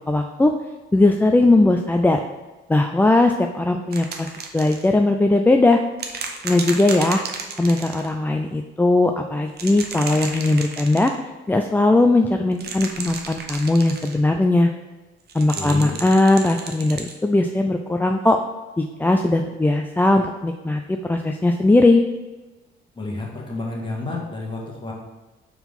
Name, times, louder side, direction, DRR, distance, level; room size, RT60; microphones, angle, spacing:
voice 1, 0.1-0.5 0.9-2.2 2.7-5.8 6.4-7.2 7.6-11.1 11.5-14.7 15.3-18.4 18.8-22.0, left 2 dB, 10° left, 4 dB, 0.3 m, -19 dB
sound 1, 3.9-4.9 6.0-8.1 9.5-11.1 12.5-14.2 15.3-17.2 18.3-18.4, right 5 dB, 55° right, 0.8 m, -33 dB
voice 2, 15.5-15.9 22.9-24.9, left 2 dB, 25° left, -2 dB, 1.5 m, -30 dB
4.6 x 3.8 x 5.5 m, 1.2 s
cardioid pair, 90°, 20 cm